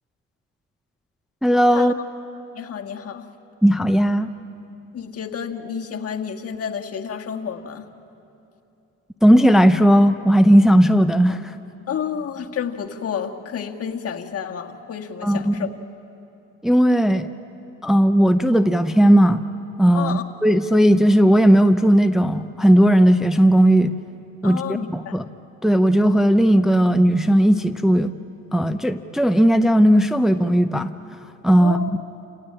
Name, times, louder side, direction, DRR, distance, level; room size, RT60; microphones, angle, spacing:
voice 1, 1.4-1.9 3.6-4.3 9.2-11.5 15.2-15.5 16.6-17.3 17.8-19.4 19.8-23.9 24.4-25.2 25.6-28.1 28.5-30.9 31.4-31.9, equal, ahead, 8 dB, 0.7 m, -16 dB
voice 2, 2.5-3.3 4.9-7.8 11.9-15.7 19.9-20.2 24.4-25.2 31.6-31.9, left 7 dB, 50° left, 3 dB, 1.7 m, -30 dB
29.0 x 17.0 x 8.8 m, 2.9 s
cardioid pair, 90°, 30 cm